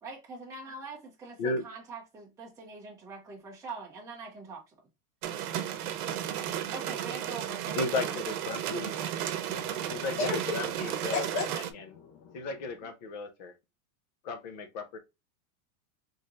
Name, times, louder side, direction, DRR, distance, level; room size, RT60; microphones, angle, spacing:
voice 1, 0.0-4.6 6.7-8.2, right 3 dB, 5° right, 1.0 m, -43 dB
sound 1, 5.2-11.7, right 10 dB, 85° right, 0.9 m, -34 dB
voice 2, 7.7-8.9 9.9-11.3 11.5-12.0 12.3-13.5 14.2-15.0, left 3 dB, 30° left, 0.4 m, -35 dB
voice 3, 9.5-10.5 11.1-11.5 11.7-12.4, left 4 dB, 65° left, 1.1 m, -35 dB
4.2 x 3.1 x 2.4 m
supercardioid pair, 175°, 44 cm